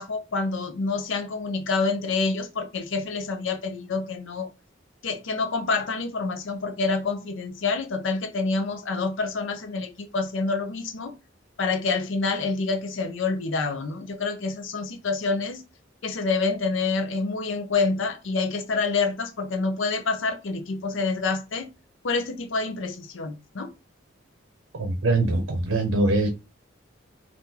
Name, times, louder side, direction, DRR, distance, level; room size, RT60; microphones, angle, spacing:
voice 1, 0.0-4.5 5.0-11.1 11.6-15.6 16.0-21.7 22.0-23.7, left 4 dB, 75° left, 0.6 m, -27 dB
voice 2, 24.7-26.3, right 2 dB, 80° right, 0.6 m, -23 dB
3.7 x 2.4 x 2.7 m
head